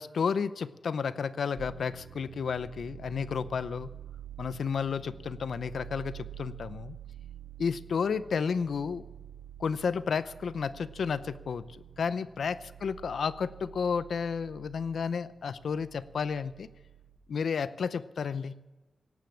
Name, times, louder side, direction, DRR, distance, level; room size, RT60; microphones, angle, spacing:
voice 1, 0.0-3.9 4.4-7.0 7.6-9.0 9.6-16.7 17.3-18.6, left 6 dB, 85° left, 15 dB, 0.6 m, -32 dB
sound 1, 1.6-17.2, right 11 dB, 85° right, 1.4 m, -48 dB
17.5 x 9.4 x 7.2 m, 1.2 s
wide cardioid pair, 145°, 0 cm